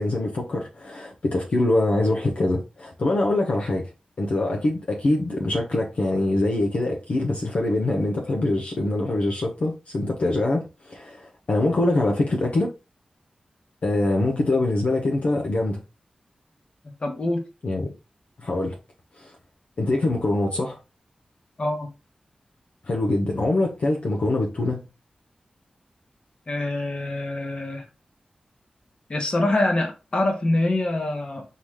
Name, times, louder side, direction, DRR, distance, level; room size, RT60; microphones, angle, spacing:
voice 1, 0.0-3.9 4.2-12.7 13.8-15.8 17.6-17.9 18.4-18.8 19.2-19.3 19.8-20.8 22.9-24.8, left 2 dB, 70° left, 1.1 m, -24 dB
voice 2, 17.0-17.4 21.6-21.9 26.5-27.9 29.1-31.4, left 2 dB, 45° left, 1.4 m, -25 dB
4.0 x 3.8 x 3.2 m
wide cardioid pair, 70°, 2 cm